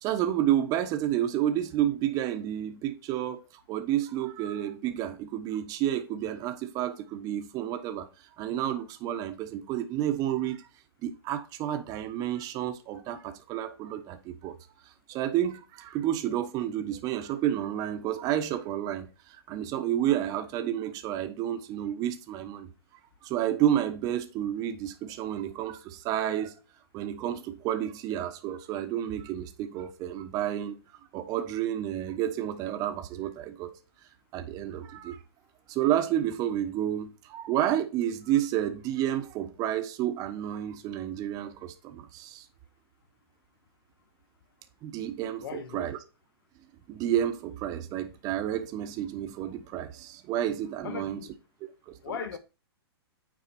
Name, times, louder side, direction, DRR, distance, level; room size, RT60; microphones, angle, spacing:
voice 1, 0.0-8.1 8.4-10.7 11.0-14.6 15.1-22.7 23.2-26.6 26.9-30.8 31.1-33.7 34.3-35.2 35.7-42.4 44.8-46.0 46.9-51.2 51.9-52.0, right 11 dB, 25° right, 1.2 m, -30 dB
voice 2, 45.4-45.9 50.8-51.3 52.0-52.4, left 7 dB, 60° left, 1.4 m, -37 dB
9.0 x 4.6 x 4.4 m
hypercardioid pair, 145°, 13 cm